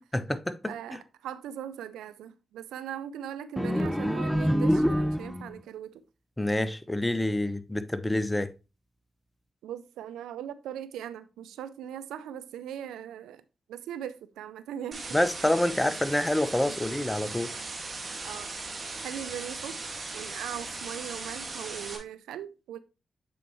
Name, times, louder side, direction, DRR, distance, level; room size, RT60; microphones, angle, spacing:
voice 1, 0.1-1.0 6.4-8.5 15.1-17.5, left 1 dB, 15° left, 0.9 m, -27 dB
voice 2, 0.7-6.0 9.6-13.4 13.7-15.2 16.7-16.8 18.2-19.8 20.1-22.8, right 10 dB, 90° right, 0.4 m, -40 dB
sound 1, 3.6-5.6, equal, 5° right, 0.5 m, -26 dB
sound 2, 14.9-22.0, right 3 dB, 50° right, 1.8 m, -38 dB
8.3 x 4.5 x 3.0 m
supercardioid pair, 40°, 0 cm